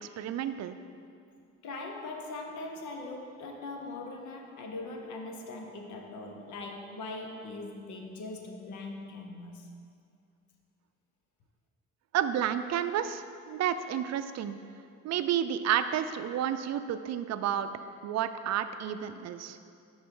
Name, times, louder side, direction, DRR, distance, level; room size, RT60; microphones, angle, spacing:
voice 1, 0.2-0.8 12.1-14.6 15.0-17.7 18.0-19.6, right 10 dB, 60° right, 11 dB, 0.4 m, -31 dB
voice 2, 1.6-9.8, left 2 dB, 75° left, 2 dB, 0.9 m, -41 dB
10.5 x 4.3 x 3.7 m, 2.4 s
cardioid pair, 90°, 30 cm